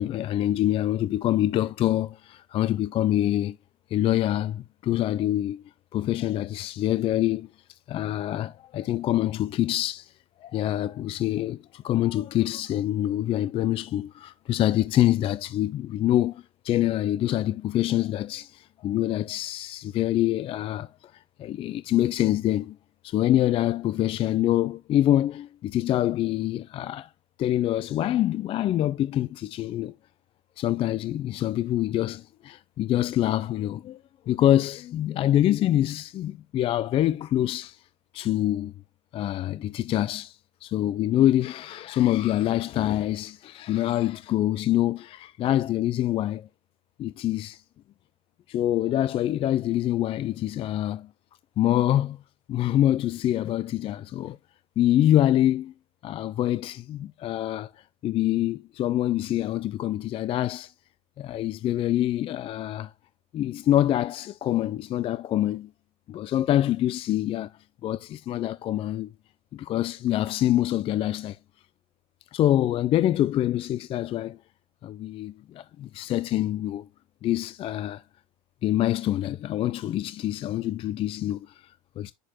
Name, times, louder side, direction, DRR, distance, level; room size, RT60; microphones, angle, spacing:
voice 1, 0.0-3.6 3.9-5.6 5.9-7.5 7.9-10.1 10.4-21.1 21.4-22.8 23.0-27.1 27.4-29.9 30.6-34.0 34.3-37.8 38.1-38.7 39.1-46.5 47.0-47.6 48.5-51.1 51.6-52.2 52.5-54.4 54.8-55.7 56.0-57.7 58.0-60.7 61.2-62.9 63.3-65.7 66.1-67.5 67.8-69.1 69.5-71.4 72.3-74.4 74.8-76.9 77.2-78.0 78.6-82.1, left 13 dB, 30° left, 0.4 m, -25 dB
7.6 x 6.5 x 2.9 m
supercardioid pair, 110°, 18 cm